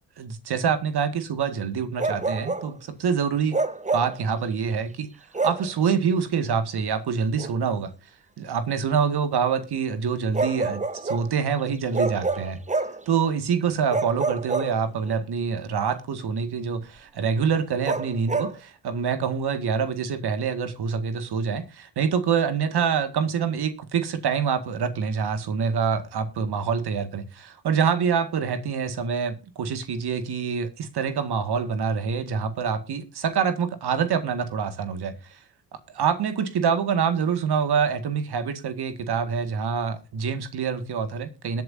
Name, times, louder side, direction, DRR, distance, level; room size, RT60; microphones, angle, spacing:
voice 1, 0.2-3.6 3.9-5.1 5.4-7.9 8.4-12.6 13.1-35.4 36.0-41.6, right 6 dB, 55° right, 2.0 m, -26 dB
Bark, 2.0-2.7 3.5-4.2 5.3-5.7 7.4-7.6 10.3-11.3 11.9-13.0 13.9-15.2 17.8-18.6, right 3 dB, 15° right, 1.1 m, -27 dB
21.0 x 8.1 x 2.7 m
hypercardioid pair, 60°, 46 cm